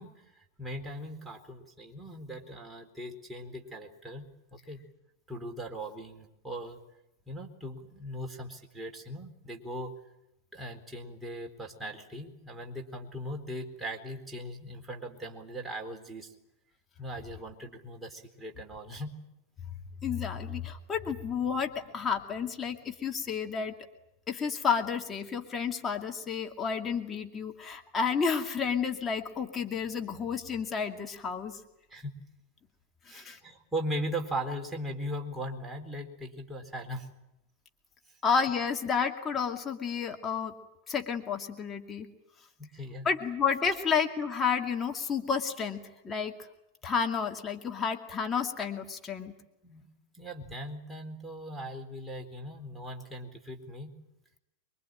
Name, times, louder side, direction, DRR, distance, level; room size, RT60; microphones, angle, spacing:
voice 1, 0.0-4.3 4.5-4.8 5.3-6.8 7.3-9.9 10.5-16.3 17.0-19.1 31.9-32.2 33.1-37.1 42.6-43.1 49.6-49.9 50.1-53.9, equal, 10° right, 1 dB, 4.1 m, -39 dB
voice 2, 20.0-23.7 24.3-31.6 33.1-33.4 38.2-40.6 40.9-42.1 43.0-46.3 46.8-49.3, left 6 dB, 20° left, 3 dB, 2.4 m, -31 dB
25.5 x 23.0 x 9.1 m, 0.89 s
figure-of-eight pair, 90°, 0 cm